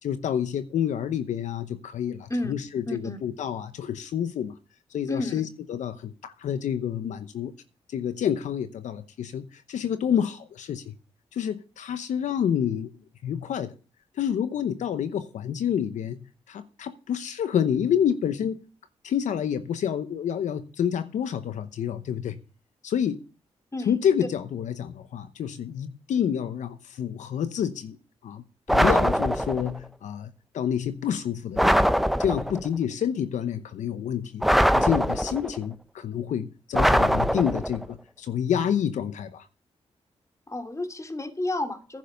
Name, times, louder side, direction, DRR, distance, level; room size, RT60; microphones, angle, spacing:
voice 1, 0.0-4.5 4.9-7.5 7.9-10.8 11.3-12.9 13.2-13.7 14.2-16.2 16.5-18.6 19.0-22.4 22.8-23.2 23.9-28.0 28.2-31.9 32.2-39.5, left 9 dB, 85° left, 0.9 m, -28 dB
voice 2, 2.9-3.2 5.1-5.4 23.7-23.9 40.5-42.0, left 2 dB, 25° left, 2.5 m, -31 dB
sound 1, 28.7-29.8 31.6-32.7 34.4-35.6 36.7-37.9, equal, ahead, 0.8 m, -22 dB
10.5 x 7.5 x 6.7 m
supercardioid pair, 50°, 12 cm